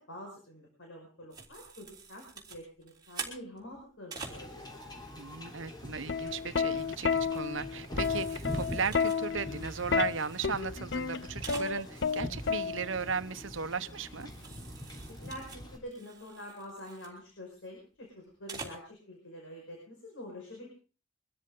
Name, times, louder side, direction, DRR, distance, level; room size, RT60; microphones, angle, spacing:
voice 1, 0.0-4.7 15.1-20.7, equal, 75° left, 0 dB, 5.4 m, -47 dB
sound 1, 1.3-4.4 6.0-6.3 6.7-10.5 10.8-10.9 11.1-11.2 11.4-11.7 13.4-13.5 14.2-17.1 18.3-18.8, right 5 dB, 20° right, 3.3 m, -47 dB
Wind / Ocean / Boat Water vehicle, 4.2-15.8, equal, 20° left, 3.5 m, -43 dB
voice 2, 5.2-14.3, right 5 dB, 75° right, 12 dB, 0.9 m, -36 dB
Plucked string instrument, 6.1-13.1 14.2-14.5, left 6 dB, 60° left, 0.7 m, -31 dB
23.5 x 13.5 x 3.8 m, 0.37 s
head